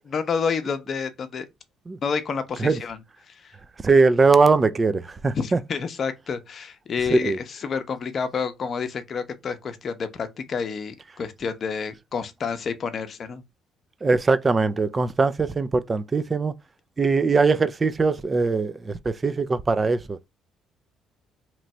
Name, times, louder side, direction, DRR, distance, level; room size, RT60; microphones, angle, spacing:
voice 1, 0.0-1.5 2.0-3.0 3.3-3.5 5.3-13.4, left 5 dB, 45° left, 0.7 m, -29 dB
voice 2, 3.8-5.6 7.1-7.4 14.0-16.6 17.0-20.2, right 4 dB, 25° right, 0.4 m, -21 dB
3.0 x 2.6 x 4.3 m
cardioid pair, 105°, 0 cm